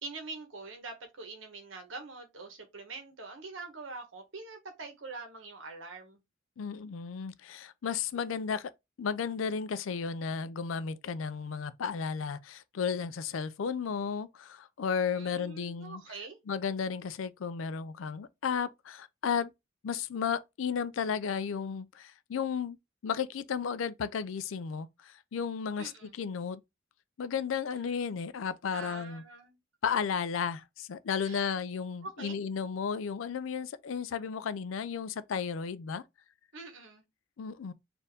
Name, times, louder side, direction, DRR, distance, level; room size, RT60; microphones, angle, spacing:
voice 1, 0.0-6.2 15.1-16.4 25.8-26.1 28.7-29.6 31.2-31.5 32.0-32.4 36.5-37.0, right 3 dB, 80° right, 1.2 m, -44 dB
voice 2, 6.6-8.7 9.0-16.0 16.5-19.5 19.8-22.8 23.0-26.6 27.2-29.2 29.8-36.0 37.4-37.7, left 6 dB, 85° left, 0.4 m, -34 dB
4.3 x 2.6 x 3.4 m
head